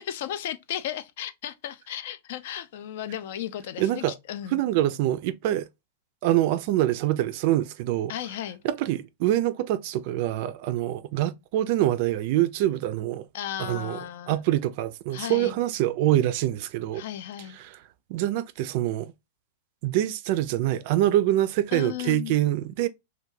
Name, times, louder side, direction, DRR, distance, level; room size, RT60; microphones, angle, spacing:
voice 1, 0.0-4.6 8.1-8.6 13.3-14.4 15.1-15.6 16.9-17.6 21.7-22.4, left 11 dB, 65° left, 0.3 m, -35 dB
voice 2, 3.8-4.1 4.5-5.7 6.2-8.1 8.6-13.3 13.6-14.0 14.3-17.0 17.5-17.8 18.1-19.1 19.8-22.9, right 14 dB, 55° right, 0.3 m, -25 dB
2.2 x 2.2 x 3.1 m
hypercardioid pair, 130°, 0 cm